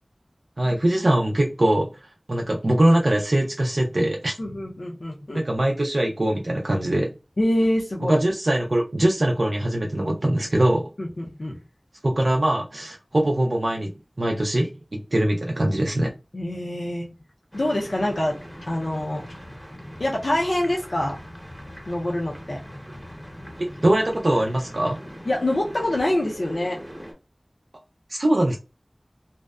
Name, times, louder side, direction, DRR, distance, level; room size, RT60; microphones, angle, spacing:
voice 1, 0.6-4.4 5.3-7.1 8.0-10.9 12.0-16.1 23.6-25.0 28.1-28.6, right 1 dB, 65° right, 0.4 m, -22 dB
voice 2, 4.4-5.4 7.4-8.2 11.0-11.6 16.3-17.1 17.5-18.4 18.7-19.2 20.0-21.2 21.9-22.6 25.3-26.8, left 1 dB, 80° left, 0.5 m, -25 dB
sound 1, 17.5-27.1, equal, 10° right, 0.7 m, -41 dB
2.7 x 2.0 x 2.2 m
wide cardioid pair, 45°, 0 cm